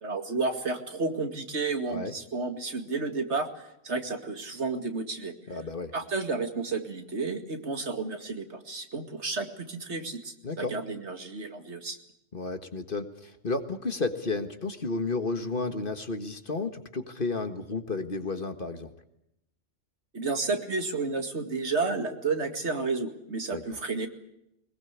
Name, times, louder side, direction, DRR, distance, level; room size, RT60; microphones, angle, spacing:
voice 1, 0.0-3.5 3.8-5.3 5.9-12.0 20.1-24.1, right 3 dB, 60° right, 6 dB, 2.4 m, -31 dB
voice 2, 5.5-5.9 10.4-10.7 12.3-18.9 23.5-23.8, left 3 dB, 45° left, 8 dB, 1.8 m, -32 dB
22.0 x 21.0 x 8.3 m, 0.83 s
omnidirectional pair, 1.3 m